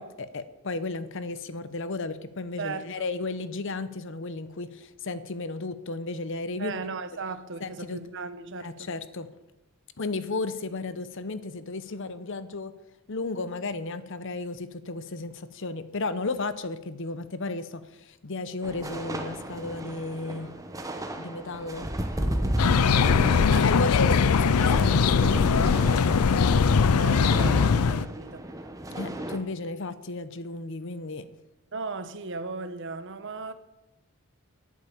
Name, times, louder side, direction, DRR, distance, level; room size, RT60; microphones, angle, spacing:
voice 1, 0.0-6.7 7.6-8.0 8.6-9.3 10.0-12.7 13.1-20.5 21.2-21.9 22.2-23.2 23.6-25.7 26.0-26.7 28.9-31.3, left 3 dB, 55° left, 0.8 m, -34 dB
voice 2, 2.6-3.1 6.6-8.9 23.2-23.7 26.4-28.4 31.7-33.5, right 4 dB, 55° right, 1.0 m, -37 dB
sound 1, 18.6-29.4, right 1 dB, 15° right, 1.0 m, -34 dB
sound 2, 22.6-28.1, left 5 dB, 85° left, 0.5 m, -21 dB
11.0 x 8.6 x 8.7 m
head